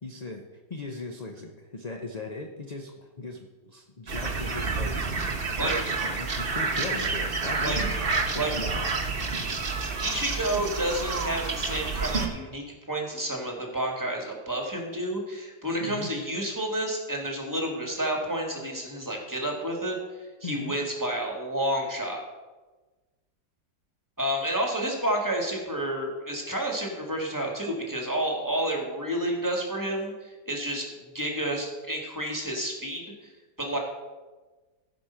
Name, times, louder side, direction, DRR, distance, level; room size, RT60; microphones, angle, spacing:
voice 1, 0.0-5.1 5.6-5.7 6.0-8.0 8.3-9.0 10.5-10.6 15.8-16.1 20.4-20.7, left 3 dB, 40° left, 2 dB, 0.6 m, -38 dB
sound 1, 4.1-12.3, right 4 dB, 40° right, 1.2 m, -29 dB
voice 2, 10.0-20.0 20.4-22.2 24.2-33.3 33.6-33.8, right 1 dB, 10° right, 0 dB, 1.9 m, -30 dB
15.5 x 5.2 x 5.7 m, 1.2 s
omnidirectional pair, 1.8 m